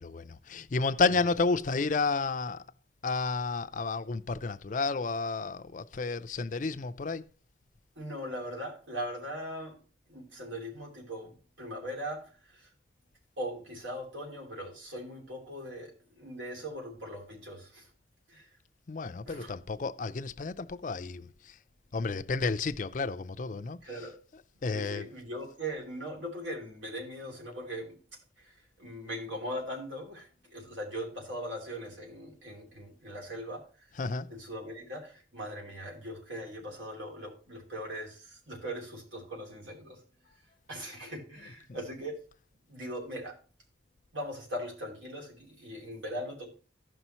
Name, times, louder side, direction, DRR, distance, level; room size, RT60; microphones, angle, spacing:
voice 1, 0.0-2.6 3.0-7.2 18.9-21.6 21.9-23.8 24.6-25.1 34.0-34.3, left 4 dB, 45° left, 0.4 m, -31 dB
voice 2, 8.0-9.8 10.1-12.7 13.4-17.9 18.3-18.5 19.3-19.5 23.8-24.2 24.7-28.0 28.4-33.9 34.3-40.0 40.7-42.2 42.7-43.4 44.1-46.5, equal, 85° right, 2.9 m, -40 dB
15.0 x 5.6 x 3.0 m
head